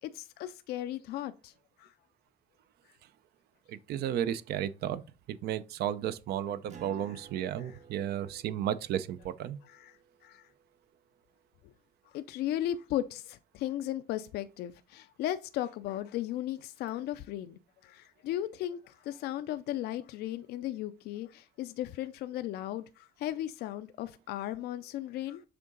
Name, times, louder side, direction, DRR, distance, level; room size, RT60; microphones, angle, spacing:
voice 1, 0.0-1.5 1.8-1.9 7.0-7.2 7.6-7.8 9.6-10.5 11.6-11.7 12.1-25.4, left 12 dB, 70° left, 0.4 m, -36 dB
voice 2, 3.7-5.0 5.3-9.6, right 10 dB, 70° right, 0.5 m, -33 dB
Acoustic guitar, 6.7-11.7, right 7 dB, 45° right, 0.8 m, -55 dB
6.7 x 3.7 x 3.8 m
cardioid pair, 110°, 17 cm